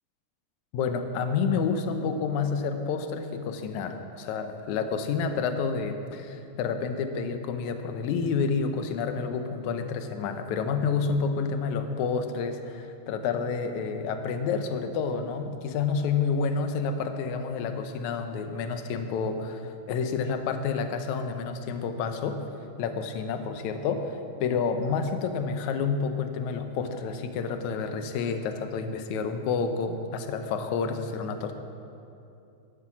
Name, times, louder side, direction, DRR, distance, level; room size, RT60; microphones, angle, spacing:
voice 1, 0.7-22.4 22.8-31.5, left 5 dB, 75° left, 7 dB, 2.2 m, -29 dB
14.0 x 11.5 x 6.0 m, 2.7 s
omnidirectional pair, 3.5 m